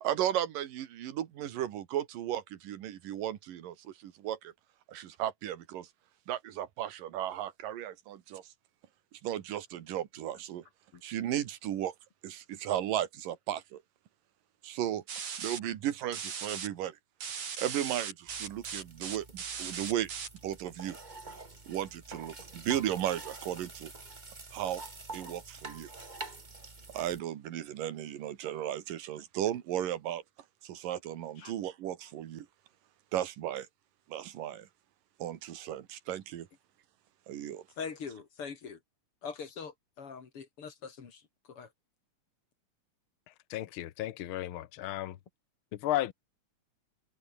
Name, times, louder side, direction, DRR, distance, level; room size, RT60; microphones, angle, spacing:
voice 1, 0.0-4.5 4.9-5.9 6.3-8.5 9.2-10.7 11.0-11.9 12.2-13.8 14.6-15.0 15.4-17.0 17.6-20.1 20.4-21.0 21.7-23.9 24.5-24.8 25.1-25.9 26.9-30.2 30.6-32.5 33.1-33.7 34.1-34.7 35.2-36.5 37.3-37.6, right 11 dB, 85° right, 3.3 m, -35 dB
sound 1, 15.1-15.6 16.1-16.7 17.2-20.4, right 6 dB, 55° right, 4.3 m, -38 dB
sound 2, 18.3-27.2, right 3 dB, 20° right, 1.4 m, -47 dB
voice 2, 37.8-38.8 39.2-41.2 41.5-41.7, left 6 dB, 45° left, 3.0 m, -42 dB
voice 3, 43.5-45.2 45.7-46.1, left 14 dB, 70° left, 1.2 m, -34 dB
omnidirectional pair, 3.8 m